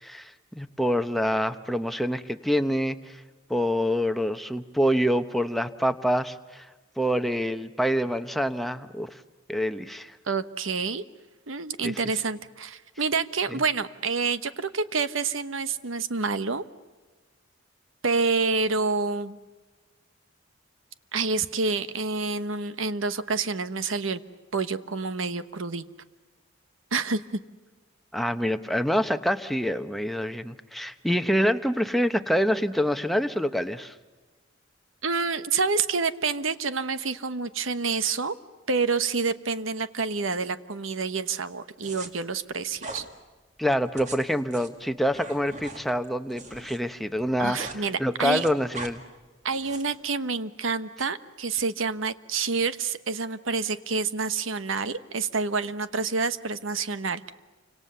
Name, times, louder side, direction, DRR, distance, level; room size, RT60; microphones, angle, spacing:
voice 1, 0.0-3.2 3.5-6.7 7.0-9.2 9.5-10.2 11.8-12.0 13.5-13.6 28.1-33.9 43.6-49.0, equal, ahead, 8 dB, 0.9 m, -26 dB
voice 2, 10.3-11.0 11.5-16.6 18.0-19.4 21.1-24.2 24.5-25.8 26.9-27.4 35.0-38.4 38.7-43.0 47.4-48.4 49.4-57.3, right 4 dB, 85° right, 12 dB, 1.2 m, -28 dB
sound 1, 41.8-42.1 42.8-43.1 43.8-46.8 47.1-47.8 48.1-48.9 49.5-50.0, right 3 dB, 35° right, 2.3 m, -41 dB
29.0 x 26.0 x 6.9 m, 1.3 s
head